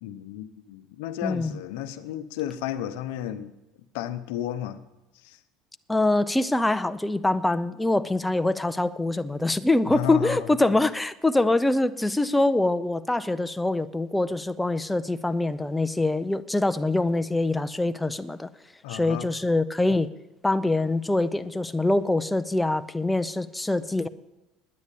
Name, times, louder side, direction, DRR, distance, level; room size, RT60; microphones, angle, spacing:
voice 1, 0.0-3.5 3.9-4.8 5.1-5.4 9.9-10.5 18.8-19.3, left 11 dB, 80° left, 0.8 m, -33 dB
voice 2, 1.2-1.6 5.9-18.5 18.9-20.1 20.4-24.1, left 2 dB, 10° left, 0.5 m, -24 dB
9.9 x 9.6 x 8.4 m
supercardioid pair, 100°, 0 cm